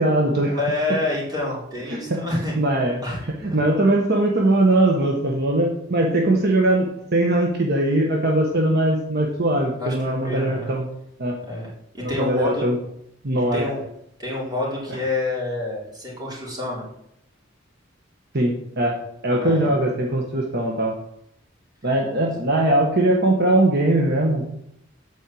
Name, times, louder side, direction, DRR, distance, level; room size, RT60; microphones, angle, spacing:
voice 1, 0.0-0.6 0.9-1.0 1.8-2.2 2.5-3.0 3.4-10.9 11.2-11.4 12.0-12.8 13.2-13.7 18.3-19.0 19.2-21.0 21.8-24.4, right 1 dB, 55° right, 0 dB, 1.4 m, -20 dB
voice 2, 0.6-2.5 3.0-3.2 3.5-3.6 9.8-10.7 11.5-11.7 11.9-12.6 13.5-13.8 14.2-16.8 19.4-19.7, left 2 dB, 20° right, -4 dB, 4.2 m, -27 dB
8.6 x 5.5 x 7.7 m, 0.76 s
head